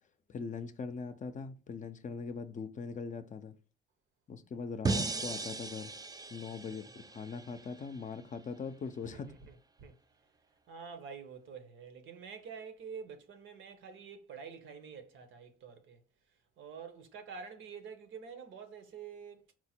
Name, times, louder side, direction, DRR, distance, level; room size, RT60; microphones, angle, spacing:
voice 1, 0.3-3.5 4.3-5.9 6.3-9.3, left 5 dB, 40° left, 0.5 m, -41 dB
sound 1, 4.8-8.0, right 3 dB, 20° right, 0.4 m, -37 dB
voice 2, 9.0-10.0 10.7-16.0 16.6-19.4, right 6 dB, 75° right, 0.9 m, -48 dB
4.4 x 2.1 x 4.3 m
cardioid pair, 90°, 20 cm